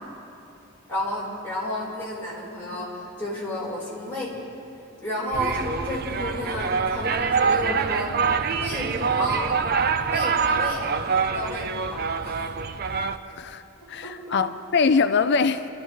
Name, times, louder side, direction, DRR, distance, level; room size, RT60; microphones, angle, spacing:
voice 1, 0.9-4.3 5.0-8.3 8.6-9.6 10.1-12.5 14.0-14.4, equal, 10° left, -8 dB, 4.3 m, -31 dB
sound 1, 5.3-13.2, right 5 dB, 45° right, 0.5 m, -25 dB
voice 2, 13.9-15.7, left 5 dB, 50° left, 10 dB, 0.5 m, -22 dB
26.5 x 13.5 x 3.2 m, 2.9 s
head